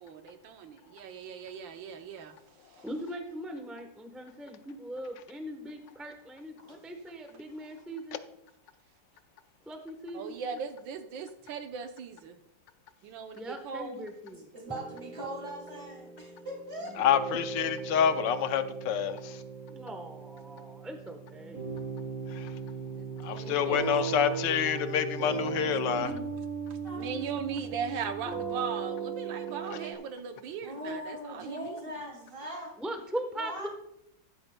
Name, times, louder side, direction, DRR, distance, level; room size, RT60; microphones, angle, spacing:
voice 1, 0.0-2.4 2.7-2.8 10.1-12.4 13.0-14.1 22.9-23.9 26.7-31.8, right 6 dB, 85° right, 7 dB, 1.6 m, -39 dB
voice 2, 2.8-8.2 9.7-10.4 13.3-14.5 19.7-21.6 23.4-24.1 32.8-33.7, right 1 dB, ahead, 5 dB, 0.5 m, -40 dB
voice 3, 14.5-16.9 26.8-27.6 30.6-32.7 33.4-33.7, equal, 30° right, -1 dB, 2.9 m, -40 dB
sound 1, 14.7-29.9, right 5 dB, 45° right, 2.6 m, -37 dB
voice 4, 17.0-19.4 22.3-22.5 23.2-26.2 29.7-29.8, left 9 dB, 75° left, 10 dB, 1.2 m, -28 dB
14.5 x 12.0 x 2.2 m, 0.81 s
omnidirectional pair, 2.0 m